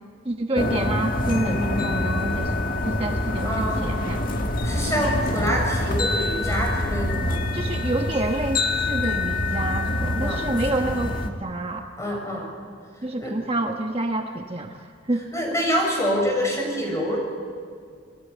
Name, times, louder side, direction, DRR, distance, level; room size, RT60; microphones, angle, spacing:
voice 1, 0.2-2.5 2.8-4.2 7.5-11.8 13.0-15.3, right 2 dB, 30° right, 2 dB, 1.3 m, -28 dB
sound 1, 0.6-11.3, left 2 dB, 45° left, 2.0 m, -25 dB
voice 2, 3.4-3.8 4.6-7.4 10.2-10.4 12.0-12.5 13.2-13.3 15.3-17.2, equal, 15° left, 0 dB, 7.3 m, -26 dB
29.0 x 20.5 x 9.4 m, 2.2 s
head